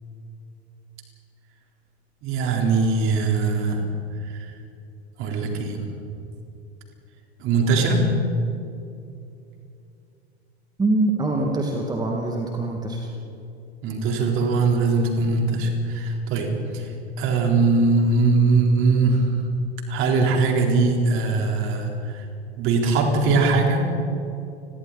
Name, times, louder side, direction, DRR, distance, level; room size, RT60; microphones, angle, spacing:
voice 1, 2.2-3.8 4.3-4.4 5.2-5.8 7.4-8.0 13.8-16.9 17.2-19.3 19.9-22.2 22.6-23.9, right 3 dB, 40° right, 1 dB, 4.3 m, -21 dB
voice 2, 10.8-13.1, right 2 dB, 10° right, 1 dB, 2.4 m, -24 dB
29.5 x 22.5 x 4.3 m, 2.6 s
figure-of-eight pair, 85°, 32 cm